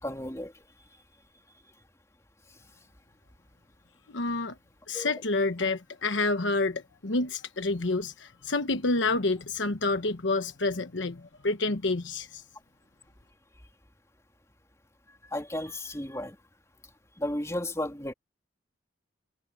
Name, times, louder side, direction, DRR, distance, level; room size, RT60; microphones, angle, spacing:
voice 1, 0.0-0.5 4.9-5.1 15.3-16.4 17.2-18.1, left 1 dB, 15° left, 3.2 m, -33 dB
voice 2, 4.1-4.5 4.9-12.4, left 3 dB, 80° left, 1.1 m, -28 dB
head